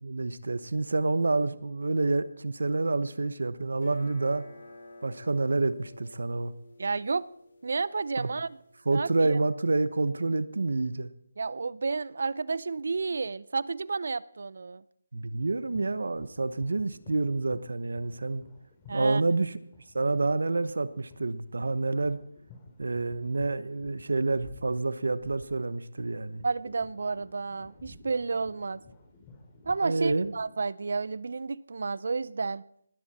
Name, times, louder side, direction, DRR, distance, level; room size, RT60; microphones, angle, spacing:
voice 1, 0.0-4.4 5.0-6.5 8.2-8.3 8.8-11.1 15.1-18.4 18.9-19.6 19.9-22.2 22.8-26.4 29.8-30.3, right 3 dB, 80° right, 1.1 m, -28 dB
sound 1, 3.7-8.8, left 2 dB, 55° left, 6.2 m, -52 dB
voice 2, 6.8-7.3 7.6-8.5 8.9-9.1 11.4-14.8 18.9-19.2 26.4-28.8 29.6-32.6, right 4 dB, 60° right, 0.6 m, -31 dB
sound 2, 15.5-30.5, left 3 dB, 15° left, 3.1 m, -53 dB
19.0 x 14.0 x 4.3 m
figure-of-eight pair, 170°, 0 cm